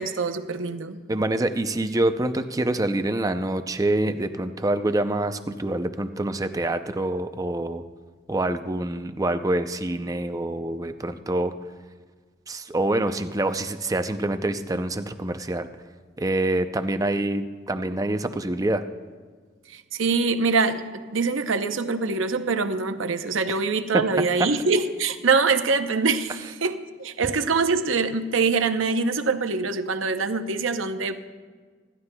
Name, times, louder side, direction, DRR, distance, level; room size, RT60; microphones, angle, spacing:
voice 1, 0.0-1.0 19.7-31.3, right 4 dB, 70° right, 8 dB, 0.7 m, -24 dB
voice 2, 1.1-7.8 8.3-11.5 12.5-15.7 16.2-18.8 23.5-23.6, right 1 dB, 15° right, 8 dB, 0.5 m, -26 dB
26.0 x 11.5 x 2.2 m, 1.5 s
head